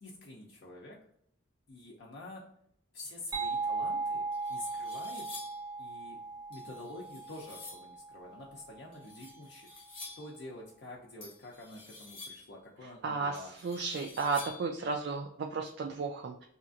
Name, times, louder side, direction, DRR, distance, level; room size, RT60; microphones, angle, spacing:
voice 1, 0.0-1.0 1.7-2.4 2.9-5.3 5.8-6.2 6.5-9.7 10.0-13.5, left 2 dB, 60° left, -3 dB, 0.5 m, -47 dB
sound 1, 3.3-8.8, right 3 dB, 20° right, 0.6 m, -37 dB
sound 2, 3.8-3.9 4.3-5.7 6.5-7.9 8.9-10.4 11.2-12.6 13.3-14.8, left 3 dB, 30° left, 0.8 m, -49 dB
voice 2, 13.0-16.4, right 4 dB, 55° right, 2 dB, 0.3 m, -34 dB
2.8 x 2.4 x 2.5 m, 0.68 s
head